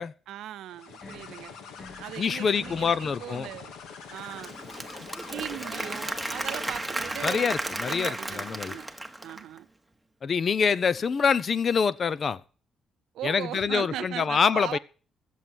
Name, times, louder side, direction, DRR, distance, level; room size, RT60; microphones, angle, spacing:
voice 1, 0.3-1.5 2.0-3.7 4.1-4.5 5.2-7.6 7.9-8.9 9.2-9.7 13.1-14.8, right 12 dB, 85° right, 0.6 m, -38 dB
sound 1, 0.7-7.2, left 6 dB, 85° left, 2.1 m, -45 dB
sound 2, 0.9-8.9, left 3 dB, 30° left, 1.4 m, -52 dB
voice 2, 2.2-3.5 7.2-8.8 10.2-12.4 13.2-14.8, left 6 dB, 45° left, 0.7 m, -25 dB
Applause / Crowd, 4.2-9.6, right 1 dB, 5° right, 1.3 m, -34 dB
14.5 x 7.4 x 7.7 m
cardioid pair, 90°, 0 cm